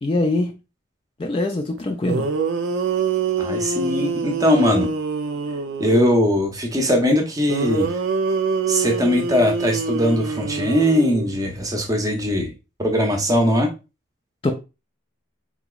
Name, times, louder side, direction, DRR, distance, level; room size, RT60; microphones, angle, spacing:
voice 1, 0.0-0.6 1.2-2.2 14.4-14.5, left 2 dB, 25° left, 4 dB, 0.3 m, -22 dB
sound 1, 1.8-1.9 2.1-6.2 7.5-11.5, right 5 dB, 70° right, 0.4 m, -25 dB
voice 2, 3.4-4.9 5.8-7.9 8.7-12.5 12.8-13.7, left 1 dB, 15° right, 2 dB, 0.7 m, -20 dB
4.0 x 2.9 x 2.3 m, 0.28 s
head